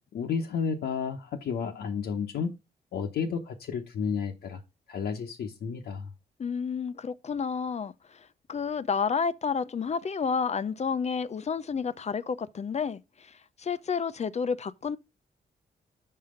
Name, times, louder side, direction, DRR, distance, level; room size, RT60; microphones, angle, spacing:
voice 1, 0.0-2.5 2.9-4.6 4.9-6.1, left 6 dB, 80° left, 1.0 m, -32 dB
voice 2, 6.4-15.0, left 6 dB, 40° left, 0.6 m, -30 dB
5.7 x 5.5 x 5.0 m
cardioid pair, 80°, 17 cm